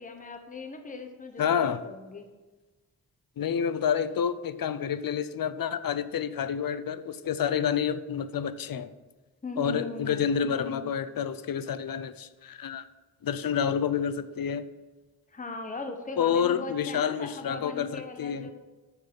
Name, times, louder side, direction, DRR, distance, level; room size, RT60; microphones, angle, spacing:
voice 1, 0.0-2.3 9.4-10.3 15.3-18.5, left 3 dB, 20° left, 0.9 m, -39 dB
voice 2, 1.4-1.8 3.4-8.9 9.6-12.8 13.2-14.7 16.2-18.5, left 8 dB, 65° left, 0.5 m, -29 dB
7.0 x 5.8 x 5.4 m
wide cardioid pair, 80°, 38 cm